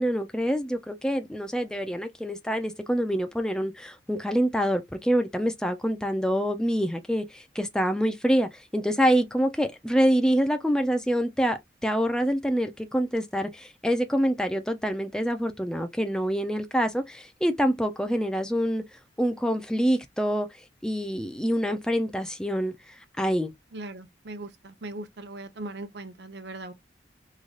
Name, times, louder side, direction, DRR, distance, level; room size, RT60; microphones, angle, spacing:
voice 1, 0.0-18.8 19.2-20.5 20.8-23.5, equal, 5° left, 0.4 m, -26 dB
voice 2, 23.7-26.7, right 2 dB, 70° right, 0.8 m, -39 dB
3.9 x 3.2 x 2.4 m
head